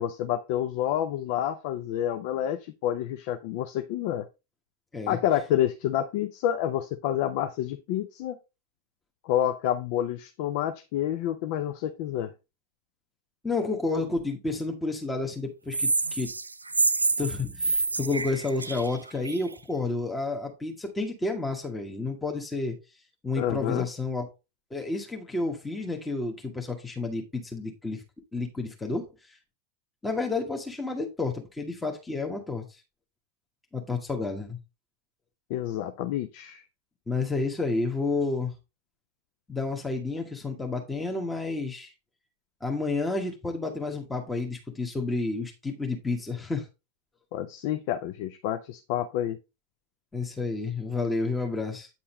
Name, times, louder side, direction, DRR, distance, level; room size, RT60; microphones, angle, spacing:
voice 1, 0.0-4.3 5.1-8.4 9.2-12.3 23.4-23.9 35.5-36.6 47.3-49.4, left 11 dB, 45° left, 9 dB, 0.5 m, -28 dB
voice 2, 13.4-16.3 17.2-22.8 23.2-24.3 24.7-28.0 28.3-29.4 30.0-32.8 33.7-34.6 37.1-38.5 39.5-41.9 42.6-46.7 50.1-51.9, left 3 dB, 10° left, 2 dB, 1.2 m, -30 dB
sound 1, 15.7-19.5, right 3 dB, 80° right, 0.4 m, -27 dB
8.7 x 5.6 x 3.1 m, 0.27 s
figure-of-eight pair, 90°, 0 cm